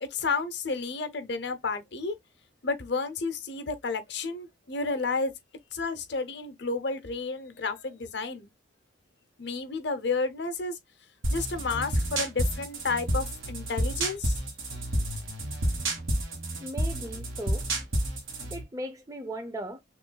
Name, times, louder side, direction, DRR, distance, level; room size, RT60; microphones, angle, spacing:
voice 1, 0.0-2.2 2.6-5.3 5.7-8.5 9.4-10.8 11.3-14.4, left 4 dB, 60° left, 0.8 m, -31 dB
sound 1, 11.2-18.6, right 1 dB, 85° right, 1.5 m, -30 dB
voice 2, 16.6-17.7 18.5-19.8, right 1 dB, 15° right, 0.5 m, -37 dB
6.3 x 2.5 x 2.3 m
head